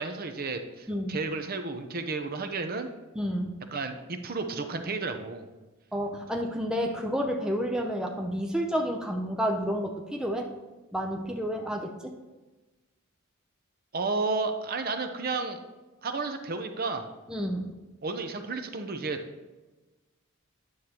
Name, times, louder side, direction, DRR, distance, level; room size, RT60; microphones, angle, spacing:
voice 1, 0.0-2.9 3.7-5.5 13.9-15.6 16.0-17.1 18.0-19.2, right 3 dB, 45° right, 7 dB, 0.6 m, -32 dB
voice 2, 0.9-1.2 3.2-3.5 5.9-10.5 10.9-12.1 17.3-17.7, equal, 5° right, 1 dB, 0.5 m, -30 dB
9.4 x 6.5 x 2.9 m, 1.2 s
head